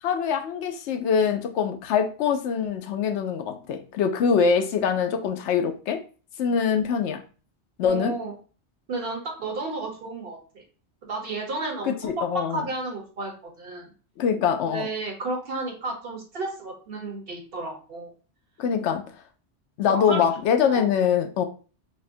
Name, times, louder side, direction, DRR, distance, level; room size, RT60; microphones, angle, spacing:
voice 1, 0.0-6.0 6.4-7.2 7.8-8.1 11.8-12.6 14.2-14.9 18.6-19.0 19.8-21.5, left 7 dB, 85° left, 6 dB, 0.9 m, -24 dB
voice 2, 7.8-8.4 8.9-10.6 11.0-13.9 14.6-18.1 19.9-20.3 20.7-20.9, right 3 dB, 60° right, 1 dB, 1.2 m, -32 dB
6.3 x 2.1 x 2.6 m, 0.37 s
omnidirectional pair, 1.1 m